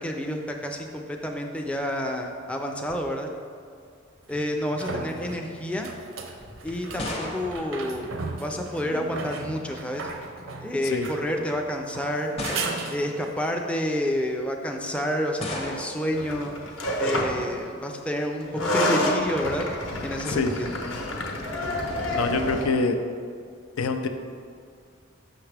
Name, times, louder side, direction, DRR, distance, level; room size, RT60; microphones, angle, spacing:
voice 1, 0.0-3.3 4.3-5.9 6.6-8.1 8.4-10.1 10.6-12.3 12.9-16.5 17.0-19.7 20.0-20.7, equal, 5° left, 2 dB, 0.4 m, -29 dB
sound 1, 2.9-3.0 4.3-13.4 16.8-16.9, right 3 dB, 70° right, 0.6 m, -37 dB
sound 2, 6.4-8.7 9.8-10.2 11.1-11.2 12.4-13.2 15.4-16.1, left 1 dB, 30° left, 0.7 m, -35 dB
sound 3, 16.1-17.5 18.4-22.6, left 1 dB, 65° left, 0.9 m, -28 dB
voice 2, 22.1-23.0 23.8-24.1, left 3 dB, 85° left, 6 dB, 0.5 m, -25 dB
6.3 x 5.9 x 3.3 m, 2.2 s
head